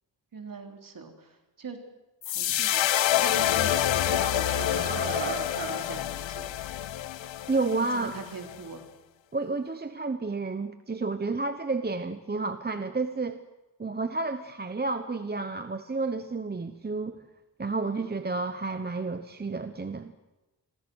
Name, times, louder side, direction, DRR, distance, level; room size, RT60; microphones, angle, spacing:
voice 1, 0.3-1.8 2.3-6.8 7.9-8.8 17.8-18.1, right 4 dB, 50° right, 4 dB, 3.8 m, -42 dB
sound 1, 2.2-8.6, left 12 dB, 90° left, 0.8 m, -27 dB
sound 2, 3.0-3.3 3.7-5.8, right 4 dB, 75° right, 5.1 m, -36 dB
voice 2, 7.5-8.1 9.3-13.4 13.8-17.2 17.6-20.1, right 3 dB, 20° right, 9 dB, 1.0 m, -31 dB
28.5 x 23.0 x 6.3 m, 1.1 s
wide cardioid pair, 130°, 44 cm